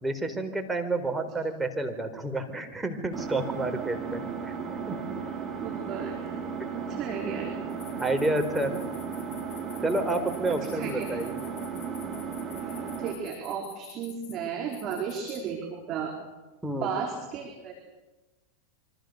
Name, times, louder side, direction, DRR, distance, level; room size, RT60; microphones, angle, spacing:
voice 1, 0.0-4.5 4.9-5.1 8.0-8.8 9.8-11.4 16.6-16.9, right 2 dB, 10° right, 5 dB, 4.3 m, -29 dB
Engine, 3.1-13.1, right 6 dB, 25° right, 6.1 m, -35 dB
voice 2, 5.6-6.4 6.9-7.5 10.7-11.2 12.6-16.1 16.8-17.7, right 7 dB, 40° right, 2 dB, 4.6 m, -34 dB
sound 1, 7.7-14.3 14.7-15.4, left 11 dB, 45° left, 7.2 m, -48 dB
27.5 x 25.0 x 6.8 m, 1.2 s
figure-of-eight pair, 95°, 0 cm